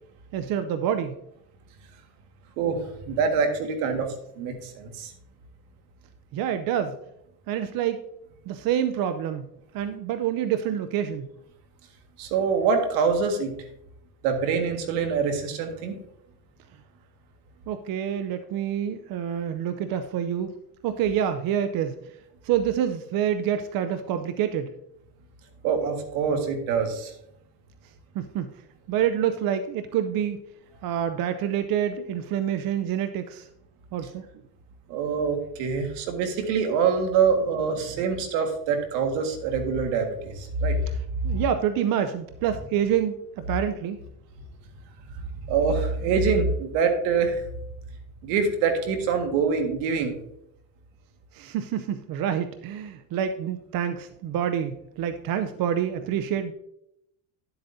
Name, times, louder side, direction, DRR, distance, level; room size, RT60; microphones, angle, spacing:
voice 1, 0.3-1.2 6.3-7.0 7.5-8.0 8.5-9.5 9.7-11.3 17.7-20.5 20.8-22.0 22.4-24.7 28.1-28.5 28.9-30.4 30.8-33.5 33.9-34.2 41.2-44.0 51.3-56.5, right 9 dB, 50° right, 10 dB, 0.7 m, -27 dB
voice 2, 2.6-4.1 4.4-5.1 12.2-13.5 14.2-16.0 25.6-27.1 34.9-40.8 41.2-41.4 45.5-47.4 48.2-50.2, right 5 dB, 75° right, 6 dB, 1.8 m, -25 dB
11.5 x 7.9 x 2.7 m, 0.79 s
supercardioid pair, 105°, 45 cm